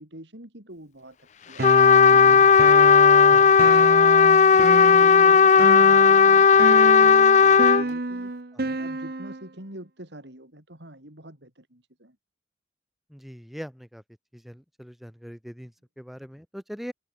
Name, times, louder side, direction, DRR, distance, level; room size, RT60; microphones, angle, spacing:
voice 1, 0.0-2.9 3.3-8.3 8.8-12.2, right 1 dB, 80° right, 7.2 m, -45 dB
Trumpet, 1.6-7.8, left 6 dB, 40° left, 0.5 m, -15 dB
sound 1, 1.6-9.5, right 2 dB, 55° right, 1.0 m, -30 dB
voice 2, 13.1-14.0 14.3-16.9, equal, ahead, 3.7 m, -41 dB
head